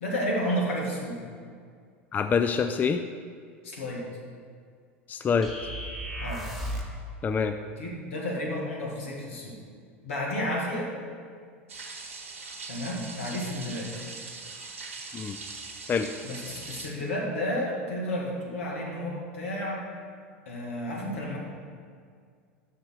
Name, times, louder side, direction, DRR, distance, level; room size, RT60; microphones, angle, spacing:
voice 1, 0.0-1.2 3.6-4.1 6.2-6.5 7.8-9.6 10.0-10.9 12.7-13.9 16.2-19.9 20.5-21.4, equal, 75° left, -2 dB, 1.9 m, -31 dB
voice 2, 2.1-3.0 5.1-5.5 7.2-7.6 15.1-15.4 15.9-16.1, left 6 dB, 25° left, 8 dB, 0.4 m, -25 dB
sound 1, 5.4-7.0, equal, ahead, 1.3 m, -35 dB
sound 2, 11.7-16.9, right 4 dB, 75° right, 1.1 m, -41 dB
6.6 x 5.8 x 6.1 m, 2.1 s
hypercardioid pair, 85°, 7 cm